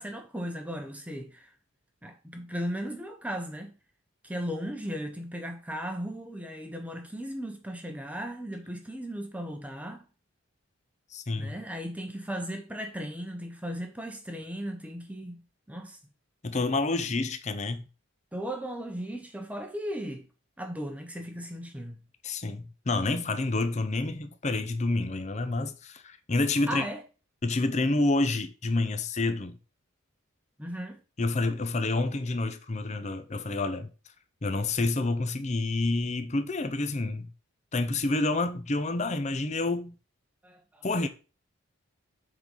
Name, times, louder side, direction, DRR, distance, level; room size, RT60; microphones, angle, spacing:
voice 1, 0.0-1.5 2.0-3.7 4.2-10.0 11.4-15.4 15.7-16.0 18.3-20.2 20.6-22.0 26.7-27.0 30.6-31.0 40.4-40.9, equal, 5° right, 0.8 m, -36 dB
voice 2, 11.1-11.5 16.4-17.9 22.2-26.8 27.4-29.6 31.2-33.9 34.4-37.3 37.7-39.9 40.8-41.1, left 2 dB, 30° left, 0.6 m, -28 dB
7.6 x 3.9 x 5.4 m
head